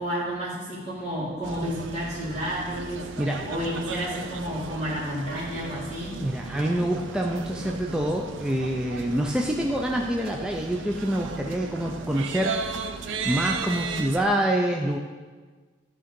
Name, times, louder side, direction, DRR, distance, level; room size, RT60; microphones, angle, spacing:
voice 1, 0.0-3.1 3.4-6.1, equal, 35° right, -11 dB, 2.3 m, -31 dB
sound 1, 1.4-14.2, right 4 dB, 90° right, 0.5 m, -36 dB
voice 2, 6.2-12.5 12.8-12.9 13.2-15.0, right 1 dB, 5° right, 0 dB, 0.4 m, -26 dB
10.5 x 3.7 x 5.3 m, 1.4 s
head